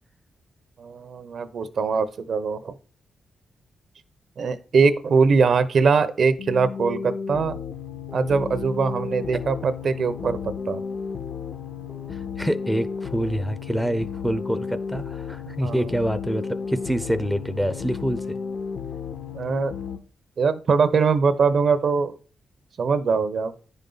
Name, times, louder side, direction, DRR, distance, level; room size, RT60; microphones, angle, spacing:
voice 1, 0.8-2.7 4.4-7.6 8.1-10.8 15.6-15.8 19.3-19.7 20.4-22.1 22.8-23.5, right 5 dB, 60° right, 12 dB, 0.8 m, -22 dB
sound 1, 6.4-20.0, left 6 dB, 65° left, 1.1 m, -33 dB
voice 2, 12.1-18.4, equal, ahead, 12 dB, 0.6 m, -26 dB
9.8 x 5.4 x 4.0 m, 0.40 s
cardioid pair, 105°, 0 cm